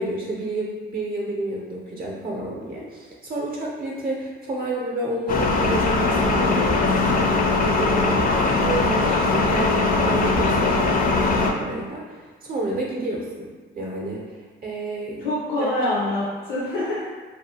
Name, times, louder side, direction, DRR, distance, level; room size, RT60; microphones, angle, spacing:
voice 1, 0.0-14.3 14.6-15.7 16.0-16.1, right 1 dB, 45° right, -3 dB, 0.6 m, -30 dB
sound 1, 5.3-11.5, left 3 dB, 45° left, 0.4 m, -20 dB
voice 2, 15.2-17.0, left 1 dB, 85° left, -7 dB, 0.6 m, -25 dB
2.5 x 2.4 x 2.7 m, 1.4 s
cardioid pair, 90°, 20 cm